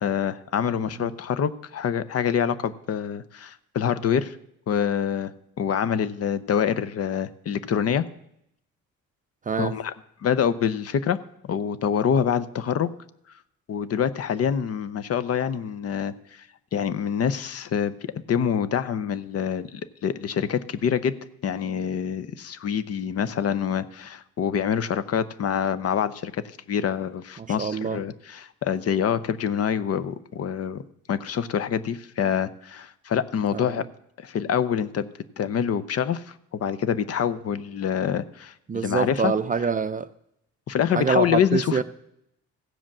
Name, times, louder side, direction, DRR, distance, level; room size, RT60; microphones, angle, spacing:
voice 1, 0.0-4.4 4.7-5.3 5.6-8.0 9.6-9.9 10.2-11.2 11.4-12.9 13.7-16.1 16.7-21.2 21.4-30.8 31.1-33.8 34.2-35.1 35.4-36.2 36.5-39.3 40.7-41.8, left 8 dB, 50° left, 0.7 m, -26 dB
voice 2, 27.4-28.0 33.5-33.9 38.7-40.1 40.9-41.8, right 5 dB, 25° right, 0.5 m, -25 dB
15.0 x 5.0 x 7.3 m
cardioid pair, 90°, 30 cm